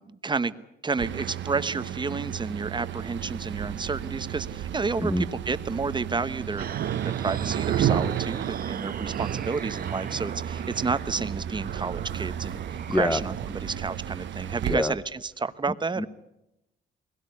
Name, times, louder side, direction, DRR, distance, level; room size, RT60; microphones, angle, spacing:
voice 1, 0.0-16.1, right 4 dB, 25° right, 13 dB, 1.0 m, -31 dB
sound 1, 1.0-14.8, right 10 dB, 65° right, 1.1 m, -32 dB
sound 2, 6.6-13.5, right 7 dB, 50° right, 1.1 m, -40 dB
voice 2, 12.9-13.2 14.7-14.9 16.0-16.1, left 1 dB, 10° left, 10 dB, 0.9 m, -25 dB
22.0 x 17.0 x 9.5 m, 0.90 s
cardioid pair, 90°, 20 cm